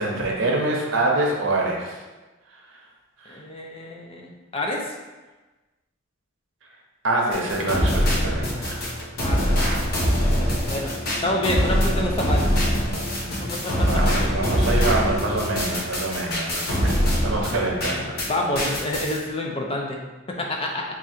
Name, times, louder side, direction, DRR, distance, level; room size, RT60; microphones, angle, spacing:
voice 1, 0.0-2.0 3.2-3.3 7.0-8.9 13.9-18.2, right 2 dB, 70° right, -1 dB, 0.8 m, -25 dB
voice 2, 3.3-4.9 9.2-9.6 10.7-10.9 11.2-12.5 13.3-13.9 17.4-20.0 20.3-20.8, left 1 dB, 30° left, 0 dB, 0.5 m, -28 dB
sound 1, 7.3-18.3 18.5-19.2, equal, 55° left, 0.8 m, -23 dB
3.6 x 2.4 x 4.3 m, 1.2 s
head